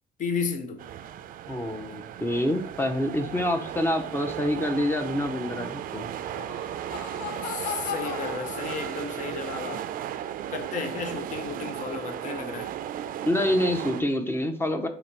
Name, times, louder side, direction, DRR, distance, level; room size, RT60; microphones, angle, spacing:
voice 1, 0.2-0.8 7.4-9.9 10.5-12.7, left 5 dB, 50° left, 0.7 m, -33 dB
sound 1, 0.8-14.0, right 10 dB, 55° right, 0.4 m, -35 dB
voice 2, 1.5-6.1 13.3-14.9, left 1 dB, 15° left, 0.7 m, -27 dB
Laughter, 6.2-9.4, left 8 dB, 90° left, 0.5 m, -37 dB
4.0 x 3.0 x 4.4 m
cardioid pair, 110°, 17 cm